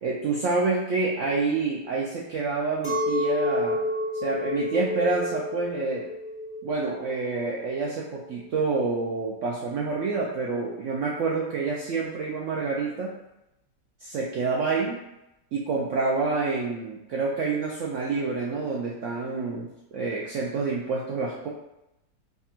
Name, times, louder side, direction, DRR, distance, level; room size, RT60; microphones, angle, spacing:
voice 1, 0.0-3.8 4.2-6.1 6.6-13.1 14.0-15.0 15.5-21.5, right 4 dB, 80° right, -3 dB, 0.6 m, -28 dB
Chink clink, 2.8-8.3, left 2 dB, 30° left, 1.3 m, -30 dB
3.4 x 2.4 x 4.2 m, 0.90 s
omnidirectional pair, 1.8 m